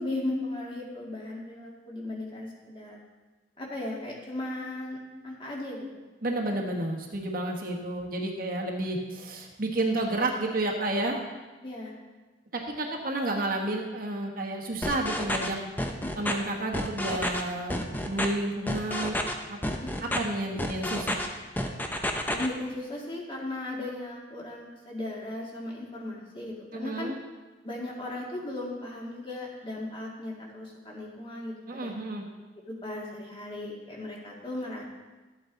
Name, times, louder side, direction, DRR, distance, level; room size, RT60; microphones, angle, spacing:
voice 1, 0.0-3.0 3.6-5.0 5.2-6.0 11.6-11.9 19.7-19.9 22.3-27.1 27.6-31.9 32.7-34.8, left 1 dB, 30° left, -2 dB, 1.9 m, -36 dB
voice 2, 6.2-11.2 12.5-15.6 16.2-17.8 18.0-19.6 20.0-21.2 26.7-27.2 31.7-32.2, right 2 dB, 50° right, 0 dB, 1.3 m, -31 dB
sound 1, 14.8-15.5 15.8-16.3 16.7-17.4 17.7-18.3 18.7-19.3 19.6-20.2 20.6-21.3 21.6-22.5, left 1 dB, 10° left, 0.7 m, -29 dB
12.5 x 8.5 x 3.9 m, 1.2 s
head